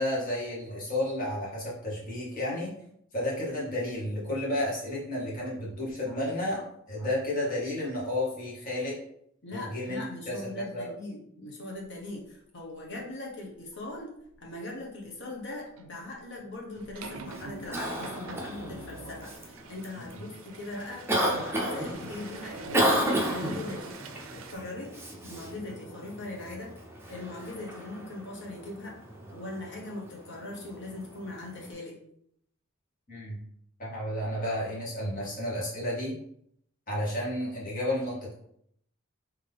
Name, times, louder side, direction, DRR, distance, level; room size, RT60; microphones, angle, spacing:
voice 1, 0.0-2.7 3.1-9.0 9.5-10.9 20.0-20.2 33.1-33.4 33.8-36.1 36.9-38.3, left 1 dB, 45° left, -6 dB, 1.7 m, -32 dB
voice 2, 9.4-14.1 14.4-23.0 23.2-24.0 24.3-24.9 25.2-26.7 27.1-28.9 29.3-32.0, left 2 dB, 60° left, -2 dB, 1.2 m, -40 dB
sound 1, 13.7-13.9 14.3-14.6 15.7-24.5, right 4 dB, 70° right, 0.4 m, -45 dB
Cough, 17.2-31.7, equal, 10° right, 0.7 m, -34 dB
3.8 x 3.2 x 3.4 m, 0.72 s
head